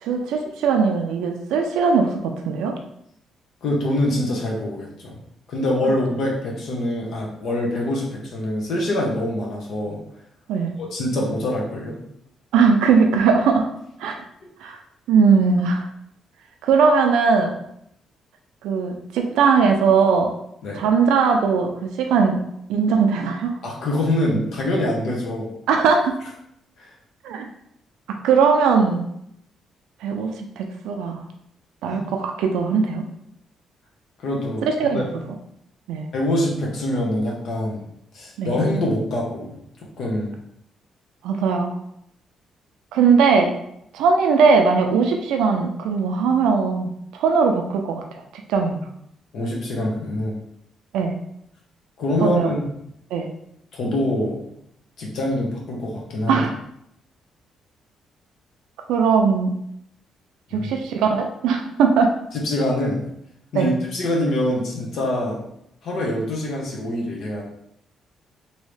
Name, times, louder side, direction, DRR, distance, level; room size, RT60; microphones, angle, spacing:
voice 1, 0.0-2.8 10.5-10.7 12.5-13.7 14.0-14.2 14.6-14.8 15.1-15.8 16.6-17.5 18.6-20.3 20.7-22.4 22.7-23.6 25.7-26.2 27.2-27.5 28.2-29.1 30.0-31.2 31.8-33.1 34.6-35.0 35.9-36.1 38.4-38.5 41.2-41.8 42.9-43.5 43.9-48.2 48.5-48.8 50.9-51.1 52.2-52.5 53.1-53.3 56.3-56.6 58.9-59.5 60.5-62.1 63.5-63.7, right 5 dB, 90° right, 3 dB, 0.4 m, -19 dB
voice 2, 3.6-5.2 5.5-10.0 10.9-12.0 20.6-20.8 23.6-25.5 26.8-26.9 31.9-32.0 34.2-35.0 36.1-37.8 38.1-39.5 40.0-40.3 49.3-50.4 52.0-52.6 53.7-54.5 55.0-56.5 60.5-60.7 62.3-63.0 63.5-65.4 65.8-67.4, left 1 dB, 65° left, -2 dB, 0.9 m, -24 dB
3.1 x 2.7 x 3.2 m, 0.74 s
cardioid pair, 90°, 0 cm